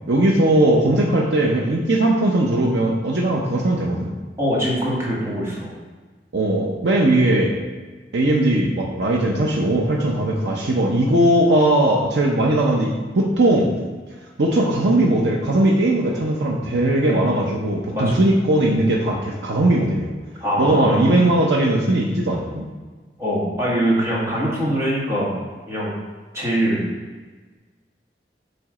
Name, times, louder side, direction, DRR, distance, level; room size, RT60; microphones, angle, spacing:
voice 1, 0.0-4.1 6.3-7.5 8.1-13.7 14.4-20.1 20.6-22.7, right 1 dB, 85° right, -2 dB, 0.7 m, -19 dB
voice 2, 4.4-5.7 17.9-18.2 20.4-21.1 23.2-25.4 25.7-25.9 26.3-26.9, equal, 15° right, -6 dB, 1.6 m, -22 dB
7.8 x 3.2 x 4.9 m, 1.4 s
head